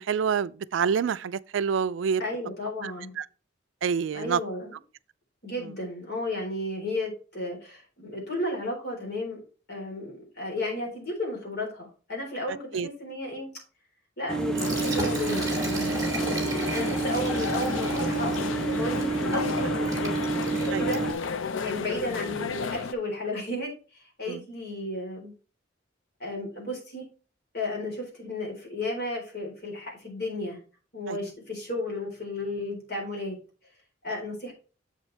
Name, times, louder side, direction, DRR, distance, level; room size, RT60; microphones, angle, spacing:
voice 1, 0.0-2.2 2.8-2.9 3.2-3.3 3.8-4.4 12.5-12.9 16.2-16.6 20.7-20.9 24.3-24.4 31.1-31.2, right 6 dB, 75° right, 0.3 m, -28 dB
voice 2, 2.2-3.2 4.1-4.8 5.4-9.4 9.7-13.5 14.2-16.0 16.7-20.3 20.8-21.0 21.6-25.3 26.2-27.1 27.5-30.6 30.9-33.4 34.0-34.5, left 1 dB, 55° left, 3.8 m, -33 dB
sound 1, 14.3-21.1, right 3 dB, 5° left, 0.7 m, -29 dB
Liquid, 14.4-21.3, right 1 dB, 20° right, 2.2 m, -36 dB
sound 2, 14.6-22.9, left 5 dB, 85° left, 0.5 m, -33 dB
7.3 x 7.2 x 3.3 m
head